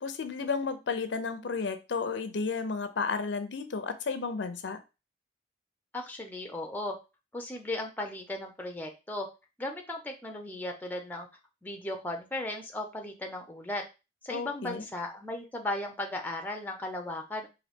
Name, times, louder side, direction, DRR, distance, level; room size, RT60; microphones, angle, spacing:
voice 1, 0.0-4.8 14.3-14.8, left 4 dB, 75° left, 9 dB, 0.5 m, -32 dB
voice 2, 5.9-7.0 7.3-9.3 9.6-11.3 11.6-13.8 14.2-17.5, left 1 dB, 10° left, 3 dB, 0.5 m, -36 dB
3.9 x 2.7 x 3.4 m, 0.28 s
head